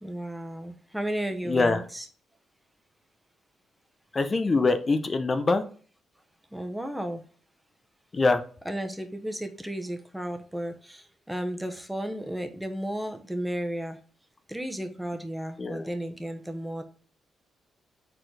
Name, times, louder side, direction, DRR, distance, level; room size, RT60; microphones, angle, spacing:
voice 1, 0.0-2.1 6.5-7.2 8.6-14.0 14.5-16.8, right 1 dB, 5° right, 6 dB, 1.1 m, -33 dB
voice 2, 1.5-1.8 4.1-5.6 8.1-8.4 15.6-15.9, left 3 dB, 40° left, 9 dB, 0.7 m, -24 dB
4.5 x 4.3 x 4.9 m, 0.42 s
supercardioid pair, 55°, 0 cm